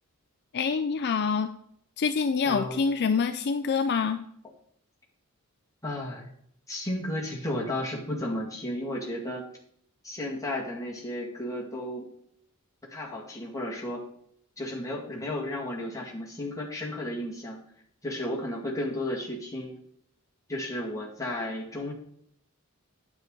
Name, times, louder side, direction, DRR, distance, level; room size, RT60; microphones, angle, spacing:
voice 1, 0.5-1.5 2.0-4.2, left 5 dB, 50° left, 8 dB, 0.4 m, -26 dB
voice 2, 2.5-2.8 5.8-6.3 6.7-9.4 10.0-12.1 12.8-14.0 14.6-17.6 18.0-19.8 20.5-21.9, left 1 dB, 15° left, -3 dB, 2.2 m, -33 dB
9.7 x 8.0 x 3.9 m, 0.68 s
head